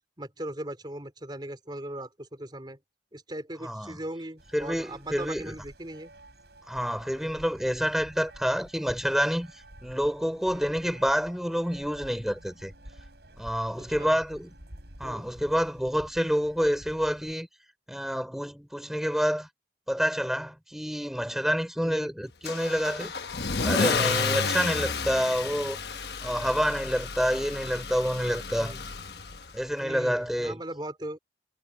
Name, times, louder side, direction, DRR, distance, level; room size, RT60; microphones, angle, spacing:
voice 1, 0.2-2.8 3.1-6.1 13.8-14.2 15.0-15.3 21.8-22.1 28.6-28.8 29.8-31.2, right 1 dB, 25° right, 4.0 m, -39 dB
voice 2, 3.6-4.0 4.5-5.6 6.7-9.5 9.8-12.7 13.4-14.5 15.0-17.5 17.9-19.5 19.9-23.1 23.6-25.8 26.2-28.7 29.5-30.6, equal, ahead, 3.9 m, -28 dB
sound 1, 4.4-17.3, right 1 dB, 70° right, 6.8 m, -50 dB
Car / Engine starting / Accelerating revving vroom, 22.4-29.6, left 5 dB, 65° left, 1.2 m, -31 dB
head